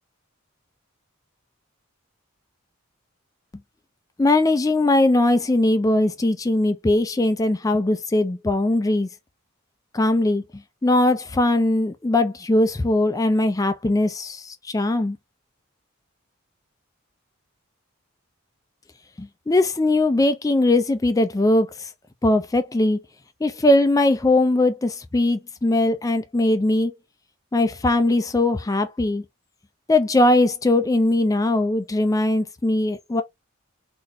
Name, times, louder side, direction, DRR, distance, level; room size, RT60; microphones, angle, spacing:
voice 1, 4.2-9.1 9.9-10.4 10.8-15.2 19.2-21.9 22.2-23.0 23.4-26.9 27.5-29.2 29.9-33.2, left 2 dB, 15° left, 0.4 m, -20 dB
4.0 x 2.5 x 3.0 m
head